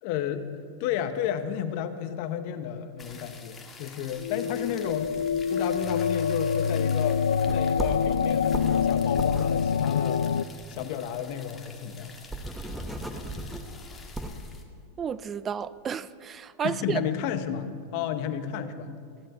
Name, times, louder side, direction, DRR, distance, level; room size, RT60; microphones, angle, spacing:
voice 1, 0.0-5.2 5.5-7.2 7.5-10.3 10.7-12.1 16.6-18.9, left 9 dB, 55° left, 10 dB, 1.0 m, -32 dB
sound 1, 3.0-14.6, left 4 dB, 20° left, 1.6 m, -48 dB
sound 2, 4.2-10.4, left 7 dB, 90° left, 0.3 m, -26 dB
sound 3, 7.3-10.8 11.2-11.3 11.6-11.7 12.0-14.5, right 1 dB, 5° right, 1.0 m, -36 dB
voice 2, 15.0-17.0, right 7 dB, 25° right, 17 dB, 0.3 m, -31 dB
14.5 x 10.5 x 5.4 m, 2.3 s
hypercardioid pair, 120°, 0 cm